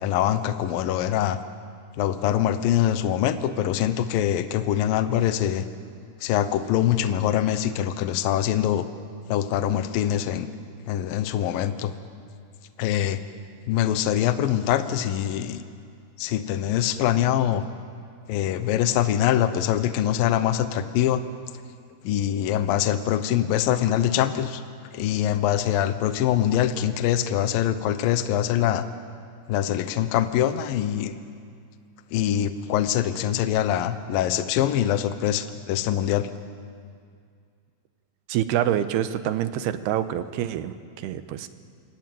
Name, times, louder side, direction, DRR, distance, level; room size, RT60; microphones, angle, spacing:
voice 1, 0.0-1.4 2.0-5.7 6.2-8.9 9.3-10.5 10.9-11.9 12.8-13.2 13.7-15.6 16.2-17.6 18.3-21.2 22.0-24.6 24.9-28.8 29.5-31.1 32.1-36.3, left 11 dB, 75° left, 11 dB, 2.5 m, -24 dB
voice 2, 38.3-41.5, right 11 dB, 90° right, 11 dB, 3.1 m, -26 dB
26.5 x 23.0 x 9.2 m, 2.3 s
omnidirectional pair, 4.5 m